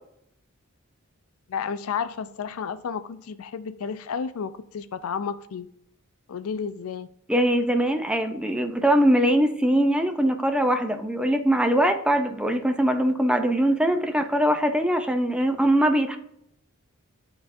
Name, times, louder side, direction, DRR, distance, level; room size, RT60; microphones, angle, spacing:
voice 1, 1.5-5.7 6.3-7.1, left 6 dB, 80° left, 0.4 m, -32 dB
voice 2, 7.3-16.2, right 1 dB, 5° right, 0.4 m, -22 dB
11.0 x 3.9 x 2.6 m
head